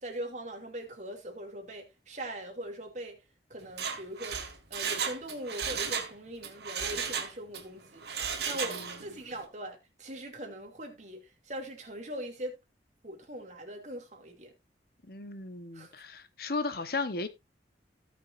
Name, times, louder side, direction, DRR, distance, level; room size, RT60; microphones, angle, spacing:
voice 1, 0.0-3.2 3.5-4.4 4.7-8.1 8.5-12.6 13.0-14.5 15.7-15.9, right 1 dB, 40° right, 2.6 m, -41 dB
Mechanisms, 3.6-6.1 6.4-7.6 8.0-9.1 9.4-9.5, right 6 dB, 65° right, 1.9 m, -34 dB
voice 2, 15.1-17.3, left 3 dB, 55° left, 1.0 m, -35 dB
17.0 x 6.2 x 2.6 m
head